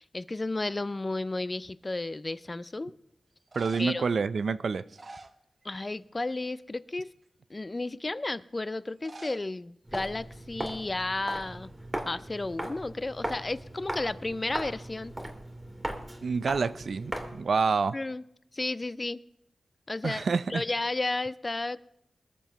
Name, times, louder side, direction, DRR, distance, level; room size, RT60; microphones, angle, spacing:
voice 1, 0.0-2.9 3.8-4.0 5.6-7.1 7.5-11.7 12.1-15.1 17.9-18.2 18.5-19.2 19.9-20.2 20.5-21.8, left 2 dB, 30° left, 0.5 m, -33 dB
sound 1, 1.8-2.3 3.3-4.1 4.7-6.0 6.2-6.6 7.2-7.3 8.9-9.5 9.8-9.9 10.0-10.1 10.9-11.1 11.4-12.6 16.6-17.2, right 2 dB, 45° right, 0.9 m, -50 dB
voice 2, 3.5-4.8 16.2-18.0 20.0-20.6, right 5 dB, 70° right, 0.5 m, -28 dB
Walk footsteps, 9.8-17.5, right 1 dB, 20° right, 2.0 m, -38 dB
21.0 x 7.0 x 5.5 m
cardioid pair, 65°, 0 cm